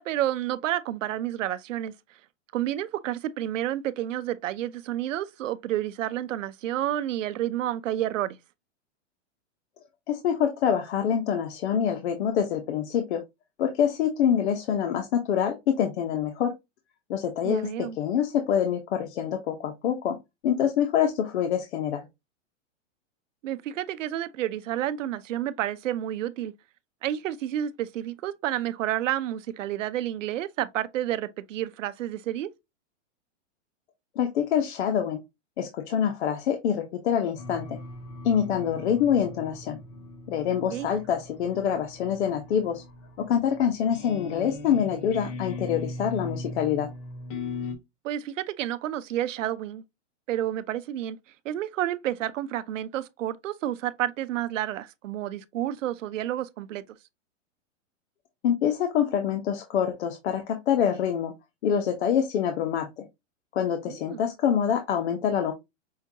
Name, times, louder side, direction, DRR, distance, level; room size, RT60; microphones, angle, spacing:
voice 1, 0.0-1.9 2.5-8.4 17.4-18.0 23.4-26.5 27.0-32.5 40.7-40.9 48.0-49.8 50.3-51.2 51.4-56.8 63.9-64.3, right 12 dB, 85° right, 0.6 m, -30 dB
voice 2, 10.1-13.2 13.6-16.5 17.1-20.2 20.4-22.0 34.2-35.2 35.6-37.8 38.2-39.8 40.3-42.8 43.2-46.9 58.4-61.3 61.6-63.0 63.5-65.5, left 8 dB, 60° left, 0.8 m, -26 dB
sound 1, 37.4-47.7, left 2 dB, 15° left, 0.4 m, -39 dB
5.6 x 2.2 x 2.7 m
hypercardioid pair, 150°, 37 cm